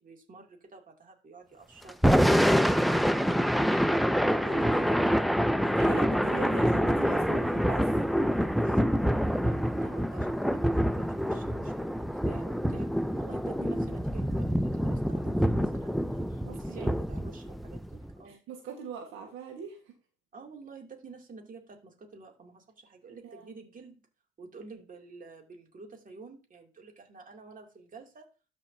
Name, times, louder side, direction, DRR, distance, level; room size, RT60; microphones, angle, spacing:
voice 1, 0.0-5.6 8.6-18.4 20.3-23.9 24.4-28.3, right 3 dB, 45° right, 2 dB, 2.7 m, -50 dB
Thunder / Rain, 1.9-18.1, equal, ahead, 0.5 m, -26 dB
voice 2, 4.4-5.0 5.6-7.9 16.4-16.9 18.3-19.9 23.1-23.6, right 7 dB, 85° right, 3 dB, 1.6 m, -42 dB
13.0 x 5.4 x 2.7 m, 0.33 s
cardioid pair, 90°, 20 cm